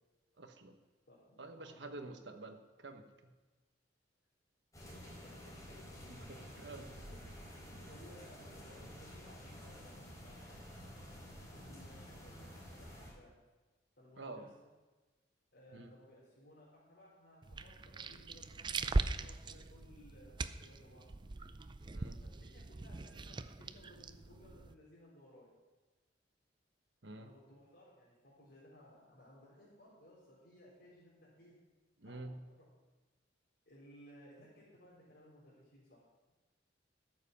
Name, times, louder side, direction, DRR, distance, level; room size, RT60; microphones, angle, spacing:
voice 1, 0.4-0.8 1.4-3.3 6.1-6.9 14.2-14.5 15.7-15.9 21.9-22.2 27.0-27.3 32.0-32.4, right 2 dB, 70° right, 6 dB, 1.2 m, -49 dB
voice 2, 1.1-1.9 5.4-5.5 7.1-7.3 7.6-10.4 11.5-13.3 14.0-14.7 15.5-21.1 22.2-25.5 27.2-31.5 32.0-32.6 33.7-36.0, left 1 dB, 60° left, -9 dB, 4.0 m, -60 dB
sound 1, 4.7-13.1, equal, 20° left, 3.4 m, -51 dB
sound 2, 17.4-24.7, right 3 dB, 25° right, 0.4 m, -40 dB
13.5 x 7.7 x 5.8 m, 1.2 s
head